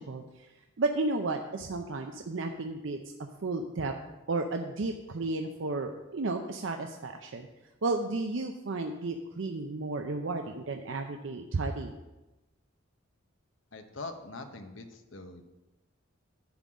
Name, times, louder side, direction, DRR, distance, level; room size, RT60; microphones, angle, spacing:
voice 1, 0.0-3.0 3.4-3.9 4.3-7.5 7.8-11.9, right 3 dB, 70° right, 4 dB, 0.6 m, -33 dB
voice 2, 13.7-15.4, left 3 dB, 70° left, 7 dB, 0.9 m, -43 dB
10.5 x 3.9 x 7.3 m, 1.1 s
head